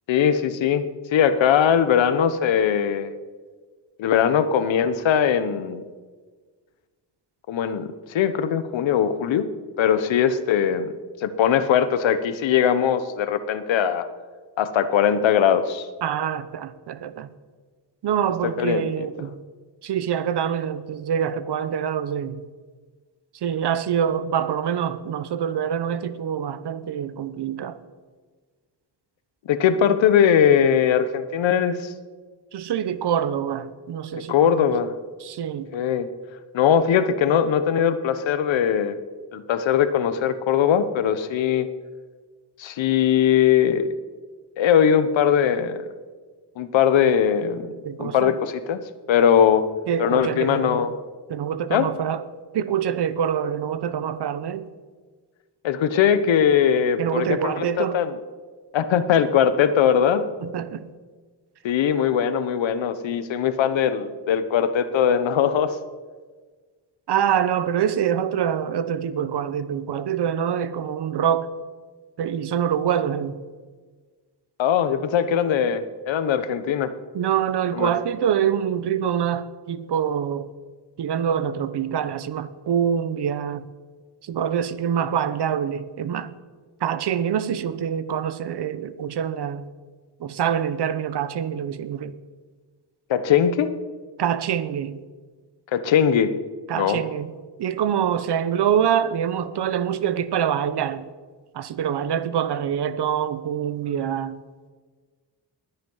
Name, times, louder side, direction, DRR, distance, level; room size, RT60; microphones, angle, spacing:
voice 1, 0.1-0.8 1.1-3.1 4.0-5.8 7.5-9.5 9.8-10.9 11.2-14.0 14.6-15.9 18.6-18.9 29.5-31.9 34.3-34.9 35.7-36.1 36.5-39.0 39.3-41.7 42.6-43.9 44.6-45.8 46.6-47.7 48.0-48.8 49.1-49.6 50.0-50.9 51.7-51.9 55.6-58.1 58.7-60.3 61.6-65.7 74.6-76.9 77.7-77.9 93.1-93.7 95.7-96.3 96.8-97.0, left 8 dB, 90° left, 1.2 m, -20 dB
voice 2, 16.0-17.3 18.0-19.4 19.8-22.4 23.4-27.8 32.5-34.6 35.2-35.7 47.8-48.4 49.9-50.9 51.3-52.3 52.5-54.7 57.0-58.0 60.4-60.9 67.1-71.5 72.2-73.4 77.1-80.5 81.0-83.7 84.2-86.3 86.8-89.7 90.2-92.1 94.2-95.0 96.7-97.3 97.6-101.1 101.5-104.4, right 8 dB, 65° right, 1.0 m, -25 dB
20.0 x 10.5 x 5.6 m
wide cardioid pair, 155°, 44 cm